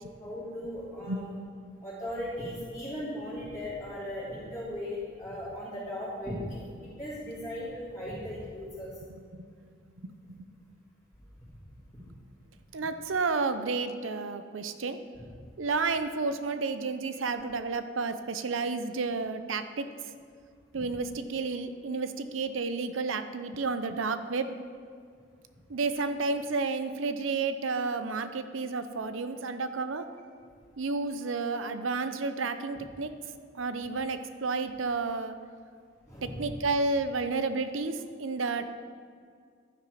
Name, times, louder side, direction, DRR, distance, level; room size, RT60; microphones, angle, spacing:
voice 1, 0.2-1.3 1.8-8.9 20.7-20.8 36.0-36.4, left 1 dB, 15° left, -11 dB, 3.1 m, -37 dB
voice 2, 12.7-15.0 15.6-19.9 20.7-24.5 25.7-30.1 30.8-33.1 33.5-35.3 36.2-38.6, right 4 dB, 90° right, 10 dB, 0.7 m, -31 dB
12.0 x 9.7 x 5.0 m, 2.2 s
head